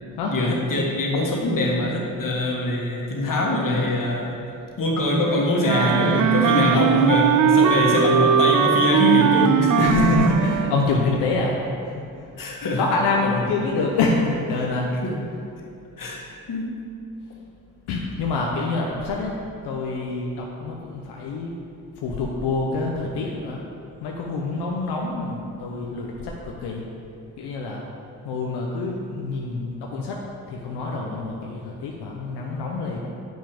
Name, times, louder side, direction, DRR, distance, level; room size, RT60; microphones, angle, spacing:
voice 1, 0.3-4.4 4.8-9.9 12.4-12.8 13.2-13.3 15.0-15.1 16.0-16.7, left 1 dB, 55° left, -1 dB, 1.8 m, -23 dB
Wind instrument woodwind instrument, 5.6-10.9, right 8 dB, 50° right, 0.5 m, -19 dB
voice 2, 9.8-11.5 11.8-12.0 12.8-14.9 17.9-19.3 19.6-21.5 22.0-23.6 24.0-26.8 27.4-27.8 28.2-30.2 30.5-33.0, left 3 dB, 90° left, -1 dB, 0.7 m, -26 dB
7.3 x 5.8 x 5.1 m, 2.6 s
supercardioid pair, 50°, 39 cm